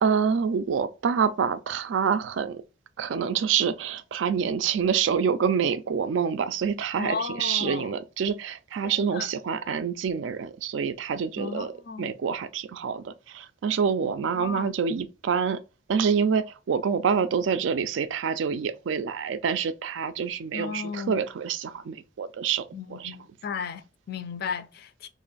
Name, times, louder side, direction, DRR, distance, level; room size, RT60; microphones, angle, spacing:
voice 1, 0.0-2.6 3.0-11.7 12.0-15.6 15.9-23.2, right 6 dB, 70° right, 0.3 m, -27 dB
voice 2, 7.0-7.9 8.8-9.3 11.4-12.1 14.4-14.7 20.5-21.3 22.7-25.1, left 5 dB, 55° left, 0.4 m, -35 dB
3.0 x 2.5 x 4.0 m
head